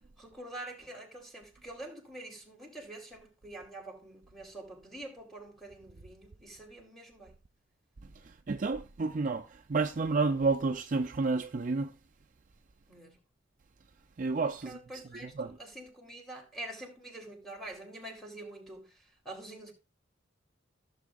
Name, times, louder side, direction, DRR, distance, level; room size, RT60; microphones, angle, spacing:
voice 1, 0.2-7.3 12.9-13.2 14.6-19.7, right 1 dB, ahead, 2.8 m, -46 dB
voice 2, 8.5-11.9 14.2-14.8 15.2-15.6, right 3 dB, 40° right, 0.5 m, -30 dB
15.0 x 7.2 x 2.4 m
head